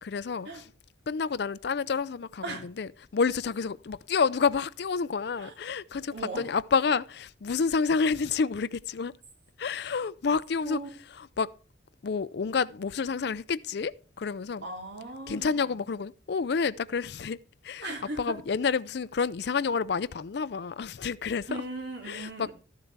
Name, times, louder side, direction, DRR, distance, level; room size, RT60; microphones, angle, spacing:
voice 1, 0.0-0.6 1.1-9.1 9.6-10.8 11.4-11.5 12.0-14.6 15.3-17.4 17.6-21.6 22.1-22.5, left 5 dB, 55° left, 0.4 m, -29 dB
voice 2, 6.1-6.5 10.6-10.9 14.6-15.8 17.8-18.4 21.5-22.5, right 2 dB, 60° right, 3.1 m, -38 dB
13.5 x 7.6 x 4.6 m
head